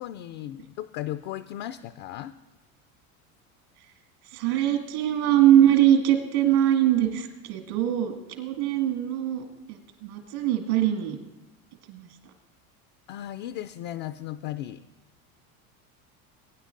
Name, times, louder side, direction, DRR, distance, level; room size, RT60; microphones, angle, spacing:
voice 1, 0.0-2.3 13.1-14.8, left 12 dB, 60° left, 12 dB, 0.5 m, -36 dB
voice 2, 4.3-11.2 11.9-12.1, right 11 dB, 80° right, 3 dB, 2.2 m, -22 dB
21.0 x 9.6 x 2.6 m, 1.1 s
hypercardioid pair, 80°, 44 cm